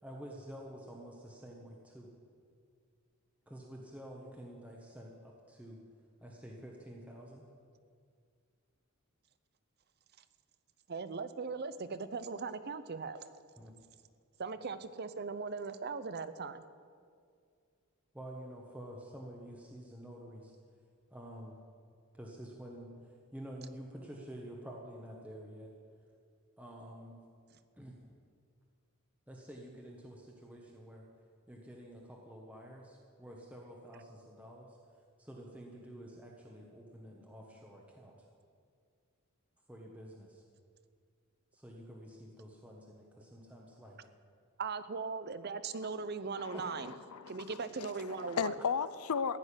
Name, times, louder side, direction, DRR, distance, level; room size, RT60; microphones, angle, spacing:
voice 1, 0.0-2.1 3.5-5.8 6.2-7.4 13.6-13.7 18.1-20.5 21.1-21.6 22.1-25.7 26.6-27.2 27.8-28.0 29.3-31.0 31.5-34.8 35.2-38.3 39.7-40.4 41.5-44.0 46.5-46.6, equal, 5° right, -1 dB, 1.2 m, -49 dB
voice 2, 10.9-13.3 14.4-16.6 44.6-46.9 47.3-48.5, right 4 dB, 50° right, 13 dB, 0.6 m, -39 dB
voice 3, 46.4-49.4, left 6 dB, 85° left, 15 dB, 0.5 m, -36 dB
15.0 x 6.5 x 9.9 m, 2.2 s
head